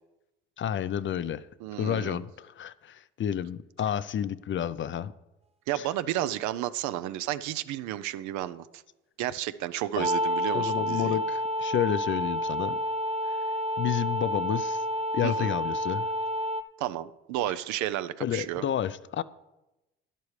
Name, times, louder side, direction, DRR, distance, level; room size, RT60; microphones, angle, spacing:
voice 1, 0.6-1.5 1.7-5.1 5.8-5.9 10.0-10.1 10.5-12.8 13.2-13.4 13.8-14.8 15.1-16.1 18.2-19.2, left 9 dB, 40° left, 0.5 m, -30 dB
voice 2, 1.6-2.2 5.7-8.7 9.2-11.2 15.2-15.5 16.8-18.6, right 13 dB, 75° right, 0.6 m, -32 dB
sound 1, 10.0-16.6, equal, 20° right, 0.6 m, -29 dB
12.0 x 10.5 x 3.2 m
supercardioid pair, 65°, 29 cm